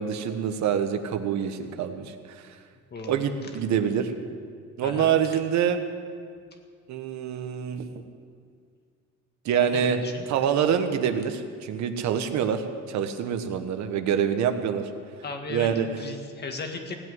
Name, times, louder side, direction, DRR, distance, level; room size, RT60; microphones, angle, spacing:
voice 1, 0.0-2.1 3.1-4.1 4.8-5.8 6.9-7.9 9.4-10.0 10.3-12.6 12.9-14.9 15.5-15.9, right 8 dB, 65° right, 8 dB, 1.3 m, -25 dB
voice 2, 2.9-3.2 4.8-5.2 9.6-10.3 15.2-15.7 16.0-16.9, left 3 dB, 35° left, 4 dB, 1.9 m, -36 dB
17.5 x 7.9 x 9.7 m, 2.1 s
cardioid pair, 135°, 30 cm